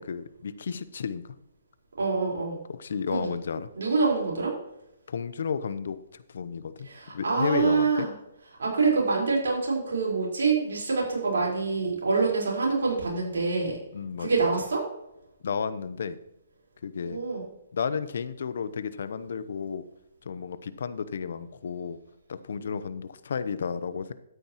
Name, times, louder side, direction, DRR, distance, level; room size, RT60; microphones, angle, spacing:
voice 1, 0.0-1.4 2.7-3.7 5.1-6.9 7.1-8.1 13.9-14.5 15.4-16.2 16.8-17.2 17.7-19.8 20.2-22.0 22.3-24.1, left 6 dB, 70° left, 14 dB, 0.8 m, -32 dB
voice 2, 2.0-2.6 3.1-3.3 3.8-4.5 6.8-8.1 8.6-13.8 14.2-14.8 17.0-17.4, right 4 dB, 80° right, -2 dB, 4.4 m, -26 dB
13.0 x 9.2 x 3.0 m, 0.84 s
hypercardioid pair, 140°, 0 cm